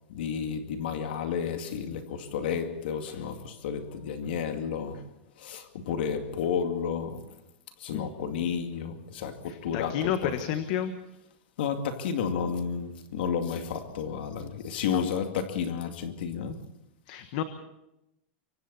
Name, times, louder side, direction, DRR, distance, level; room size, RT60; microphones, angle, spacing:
voice 1, 0.1-5.0 5.4-7.2 7.8-10.5 11.6-16.6, left 7 dB, 60° left, 2.3 m, -31 dB
voice 2, 9.4-10.9 14.9-15.0 17.1-17.4, left 10 dB, 40° left, 1.4 m, -31 dB
25.0 x 25.0 x 4.2 m
supercardioid pair, 180°, 6 cm